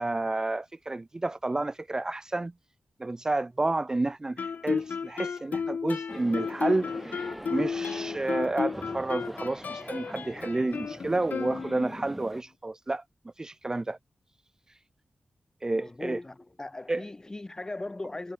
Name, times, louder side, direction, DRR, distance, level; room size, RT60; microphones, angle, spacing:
voice 1, 0.0-2.5 3.0-13.0 13.4-14.0 15.6-16.2 16.9-17.0, right 2 dB, 20° right, 0.5 m, -30 dB
Guitar, 4.4-12.1, left 6 dB, 65° left, 1.1 m, -33 dB
sound 1, 6.1-12.4, equal, 5° right, 2.4 m, -43 dB
voice 2, 15.7-18.3, left 2 dB, 20° left, 2.3 m, -38 dB
wide cardioid pair, 155°, 3 cm